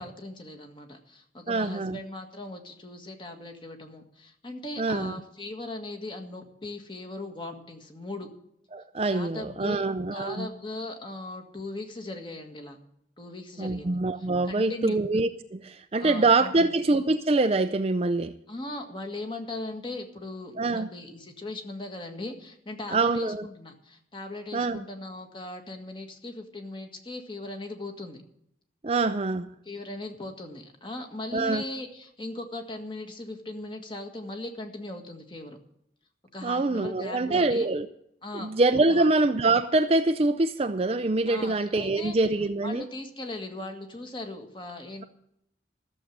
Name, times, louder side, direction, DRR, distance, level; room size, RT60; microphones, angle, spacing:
voice 1, 0.0-8.3 9.1-9.8 10.1-12.8 13.2-15.0 16.0-16.7 18.5-28.2 29.6-35.6 36.3-37.7 38.2-38.5 38.9-39.1 41.3-42.2 42.6-45.0, left 2 dB, 25° left, 4 dB, 1.8 m, -39 dB
voice 2, 1.5-2.0 4.8-5.1 8.7-10.5 13.6-18.3 20.6-20.9 22.9-23.5 24.5-24.8 28.8-29.5 31.3-31.6 36.4-37.9 38.3-42.8, right 3 dB, 30° right, 8 dB, 0.5 m, -25 dB
14.0 x 7.4 x 9.4 m, 0.74 s
head